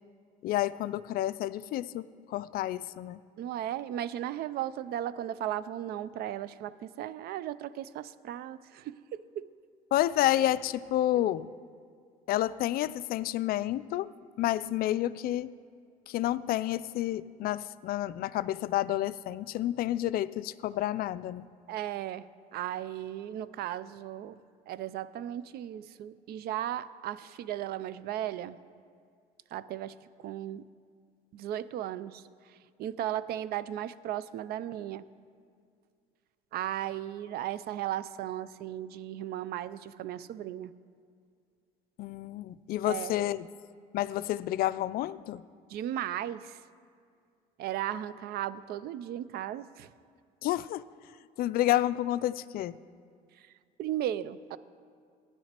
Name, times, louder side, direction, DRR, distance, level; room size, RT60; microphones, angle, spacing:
voice 1, 0.4-3.2 9.9-11.5 12.3-15.5 16.1-21.5 42.0-43.5 43.9-45.4 50.4-50.8 51.4-52.8, left 14 dB, 55° left, 16 dB, 0.4 m, -30 dB
voice 2, 3.4-9.2 11.2-11.3 21.7-22.3 22.5-24.4 24.7-28.6 29.5-30.0 30.2-30.6 31.3-32.2 32.8-35.1 36.5-40.7 42.8-43.2 45.7-46.6 47.6-49.9 53.8-54.6, right 12 dB, 60° right, 16 dB, 0.5 m, -36 dB
16.0 x 10.0 x 2.9 m, 2.2 s
supercardioid pair, 80°, 18 cm